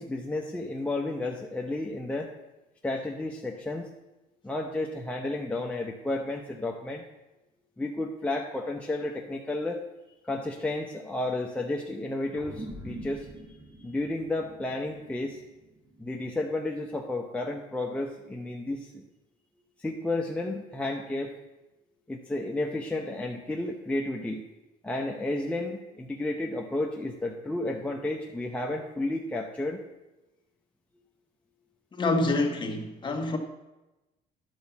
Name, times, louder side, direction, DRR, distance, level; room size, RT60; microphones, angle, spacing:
voice 1, 0.0-2.3 2.8-3.9 4.4-7.1 7.8-9.8 10.2-13.3 13.8-15.4 16.0-19.0 19.8-21.3 22.1-24.4 24.8-29.8, left 2 dB, 10° left, 0 dB, 0.8 m, -32 dB
sound 1, 12.3-17.1, right 1 dB, 20° right, 3.0 m, -45 dB
voice 2, 31.9-33.4, left 2 dB, 25° left, 3 dB, 1.6 m, -27 dB
11.0 x 5.2 x 7.2 m, 1.0 s
cardioid pair, 110°, 17 cm